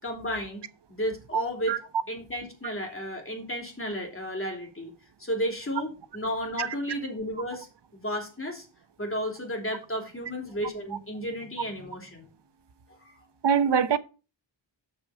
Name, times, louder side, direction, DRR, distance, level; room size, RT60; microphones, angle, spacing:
voice 1, 0.0-1.8 2.1-4.9 5.2-7.7 7.9-8.7 9.0-12.3 13.0-13.1, equal, 30° left, 3.1 m, -33 dB
voice 2, 13.4-14.0, right 7 dB, 65° right, 0.8 m, -23 dB
7.2 x 6.3 x 4.9 m
wide cardioid pair, 95°, 46 cm